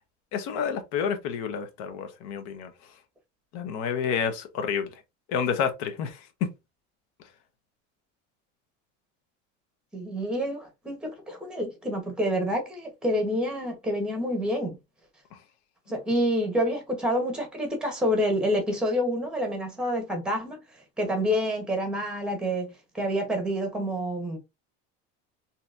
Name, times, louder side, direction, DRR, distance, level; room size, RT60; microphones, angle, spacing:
voice 1, 0.3-2.7 3.5-4.9 5.3-6.3 15.3-15.4, left 7 dB, 60° left, 0.9 m, -29 dB
voice 2, 9.9-14.8 15.9-20.6 21.0-22.7 22.9-24.4, equal, 5° right, 0.9 m, -28 dB
3.8 x 2.9 x 2.4 m
cardioid pair, 165°, 32 cm